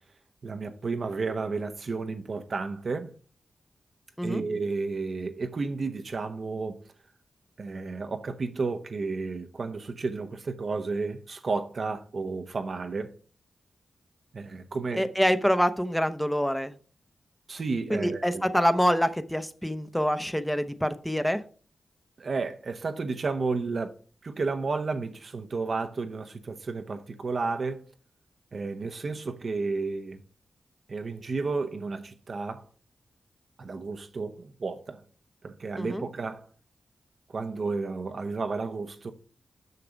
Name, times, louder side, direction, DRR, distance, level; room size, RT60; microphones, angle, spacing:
voice 1, 0.4-3.1 4.2-6.8 7.6-13.1 14.3-15.1 17.5-18.4 22.2-23.9 24.2-27.9 28.5-30.2 30.9-32.6 33.6-35.0 35.4-36.5 37.3-39.1, right 4 dB, 60° right, 0.9 m, -32 dB
voice 2, 14.9-16.7 17.9-21.4 35.8-36.0, equal, 5° left, 0.8 m, -26 dB
6.7 x 5.8 x 5.1 m
cardioid pair, 55°, 0 cm